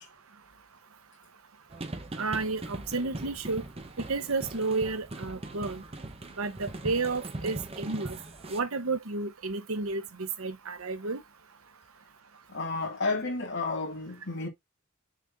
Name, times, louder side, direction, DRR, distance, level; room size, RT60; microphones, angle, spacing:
sound 1, 1.7-8.6, right 2 dB, 30° right, 1.0 m, -40 dB
voice 1, 2.2-3.6 4.1-5.8 6.4-8.2 8.5-11.2, right 3 dB, 85° right, 1.0 m, -31 dB
voice 2, 12.5-14.5, left 3 dB, 60° left, 2.4 m, -31 dB
6.4 x 4.1 x 3.6 m
head